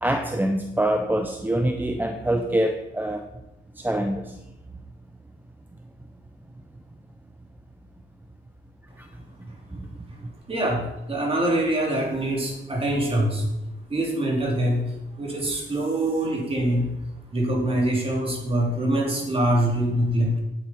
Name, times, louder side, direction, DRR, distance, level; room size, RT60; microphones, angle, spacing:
voice 1, 0.0-3.2 3.7-4.4 9.0-9.1 9.7-9.9 10.2-10.3, right 1 dB, 10° right, 6 dB, 0.6 m, -25 dB
voice 2, 10.5-13.5 13.9-16.9 17.3-20.4, right 1 dB, 30° right, -2 dB, 3.4 m, -24 dB
8.7 x 8.3 x 4.5 m, 0.97 s
cardioid pair, 90°, 20 cm